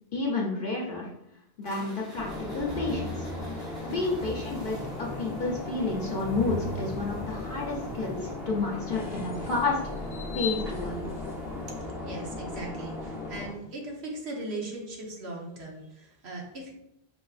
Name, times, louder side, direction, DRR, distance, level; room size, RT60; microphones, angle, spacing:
voice 1, 0.1-1.1 1.6-3.3 3.8-9.8 10.3-11.0, left 3 dB, 60° left, -2 dB, 0.8 m, -30 dB
sound 1, 1.6-11.8, equal, 45° right, 1.7 m, -46 dB
sound 2, 2.2-13.5, left 2 dB, 5° right, 0.6 m, -36 dB
voice 2, 11.7-16.7, right 2 dB, 80° right, -1 dB, 1.2 m, -39 dB
5.3 x 3.1 x 2.4 m, 0.82 s
omnidirectional pair, 1.1 m